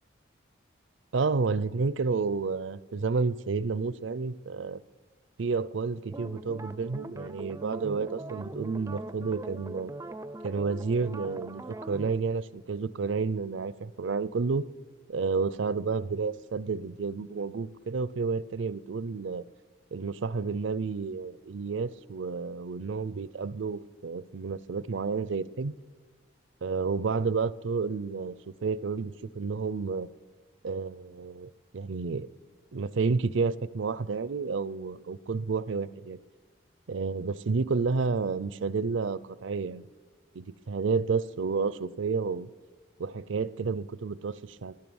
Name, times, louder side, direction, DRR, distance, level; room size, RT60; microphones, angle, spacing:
voice 1, 1.1-4.8 5.4-9.9 10.4-14.7 15.1-19.5 19.9-25.7 26.6-28.3 28.6-30.1 30.6-32.3 32.7-36.2 36.9-39.8 40.3-42.5 43.0-44.7, right 4 dB, 75° right, 18 dB, 0.5 m, -30 dB
sound 1, 6.1-12.2, right 2 dB, 15° right, 0.4 m, -41 dB
17.0 x 11.0 x 7.1 m, 1.3 s
head